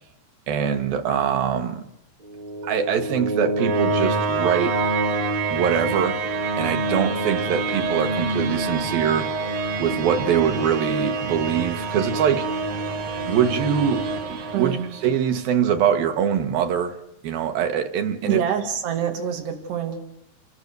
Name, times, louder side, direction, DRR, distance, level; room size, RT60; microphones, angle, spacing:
voice 1, 0.5-1.9 2.6-4.8 5.5-6.2 6.6-12.5 13.3-14.8 15.0-17.0 17.2-18.4, right 8 dB, 65° right, 3.0 m, -23 dB
sound 1, 2.2-15.3, right 3 dB, 50° right, 2.5 m, -26 dB
voice 2, 14.2-14.9 18.2-20.0, right 8 dB, 85° right, 4.3 m, -26 dB
30.0 x 23.0 x 6.7 m
omnidirectional pair, 4.7 m